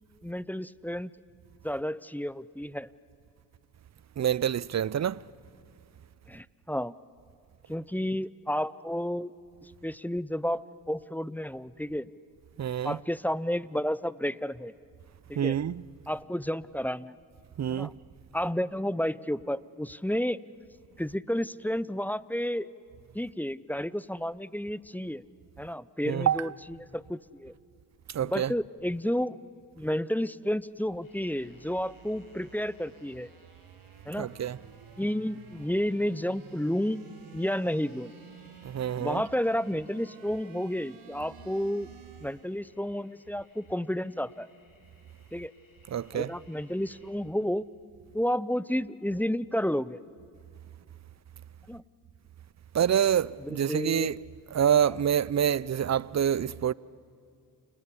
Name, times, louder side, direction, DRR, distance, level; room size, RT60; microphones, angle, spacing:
voice 1, 0.2-1.1 1.6-2.9 6.3-6.9 7.7-9.3 9.6-12.1 12.8-14.7 15.3-15.6 16.1-17.2 17.7-17.9 18.3-20.4 21.0-22.7 23.1-25.2 25.6-26.5 26.9-27.5 28.2-29.4 29.8-33.3 34.1-34.3 35.0-37.0 37.3-38.1 39.0-41.9 42.2-44.5 45.3-45.5 46.1-47.6 48.1-50.0 51.7-51.8 53.4-54.1, equal, 5° left, 0.7 m, -31 dB
voice 2, 4.2-5.2 12.6-13.0 15.3-15.8 17.6-17.9 26.1-26.5 28.1-28.5 34.2-34.6 38.6-39.2 45.9-46.3 52.7-54.2 54.5-56.7, right 9 dB, 40° right, 0.6 m, -27 dB
sound 1, 30.4-42.6, right 8 dB, 65° right, 1.6 m, -53 dB
sound 2, 31.0-47.1, left 2 dB, 50° left, 7.3 m, -63 dB
28.5 x 19.5 x 9.9 m
supercardioid pair, 50°, 44 cm